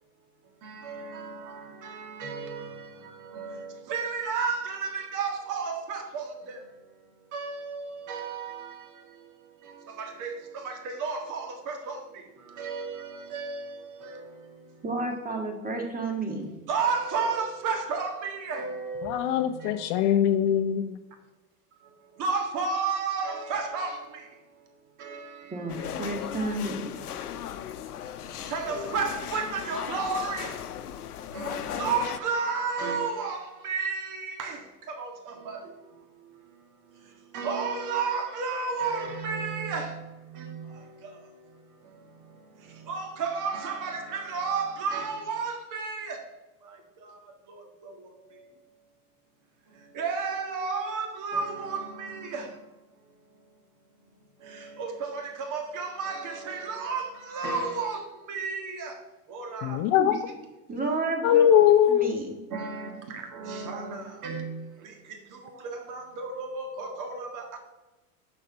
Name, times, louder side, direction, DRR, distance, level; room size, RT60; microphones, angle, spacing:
voice 1, 0.6-6.6 7.3-9.0 9.6-14.6 16.7-20.2 22.2-24.3 25.0-26.1 28.2-30.6 31.3-35.7 37.3-41.2 42.3-46.2 46.6-47.2 47.5-48.5 49.9-52.5 54.4-59.0 59.3-59.8 62.5-67.5, right 5 dB, 40° right, 4 dB, 1.8 m, -33 dB
voice 2, 14.8-16.5 25.5-27.0 60.0-60.1 60.7-61.5 61.9-62.4, right 2 dB, 20° right, 3 dB, 2.1 m, -31 dB
voice 3, 19.0-21.0 59.6-60.2 61.2-62.1, left 10 dB, 45° left, 10 dB, 0.6 m, -21 dB
sound 1, 25.7-32.2, left 10 dB, 80° left, 0.7 m, -37 dB
6.6 x 5.2 x 6.5 m, 1.1 s
hypercardioid pair, 95°, 45 cm